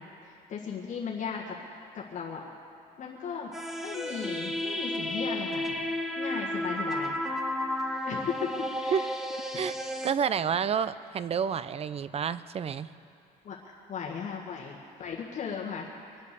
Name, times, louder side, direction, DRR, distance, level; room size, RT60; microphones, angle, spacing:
voice 1, 0.0-1.6 1.9-2.4 3.0-3.5 3.8-5.8 6.2-7.2 8.1-9.1 13.4-13.6 13.9-15.9, left 6 dB, 50° left, -3 dB, 1.7 m, -36 dB
sound 1, 3.5-10.1, left 1 dB, ahead, 1.3 m, -32 dB
voice 2, 10.0-12.9, right 7 dB, 35° right, 15 dB, 0.5 m, -29 dB
25.0 x 8.4 x 6.8 m, 2.6 s
cardioid pair, 110°, 17 cm